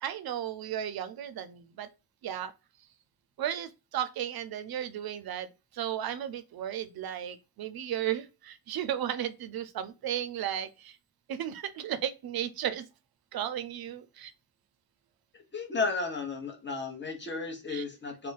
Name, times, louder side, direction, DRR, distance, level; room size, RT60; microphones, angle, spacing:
voice 1, 0.0-1.9 2.2-2.5 3.4-5.5 5.7-11.0 11.3-12.9 13.3-14.3 17.7-17.8, right 10 dB, 65° right, 0.5 m, -34 dB
voice 2, 15.5-18.3, left 4 dB, 30° left, 0.9 m, -33 dB
2.4 x 2.2 x 3.8 m
cardioid pair, 75°, 39 cm